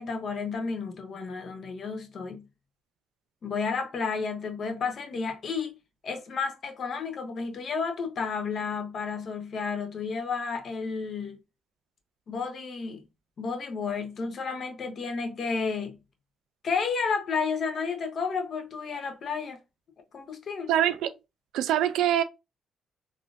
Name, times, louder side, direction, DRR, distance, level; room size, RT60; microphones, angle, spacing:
voice 1, 0.0-2.5 3.4-5.7 6.0-11.4 12.3-13.0 13.4-16.0 16.6-19.6 20.1-20.7, left 5 dB, 55° left, 0.8 m, -31 dB
voice 2, 20.7-21.1 21.5-22.2, right 11 dB, 85° right, 0.3 m, -24 dB
3.5 x 2.5 x 2.5 m
cardioid pair, 90°, 0 cm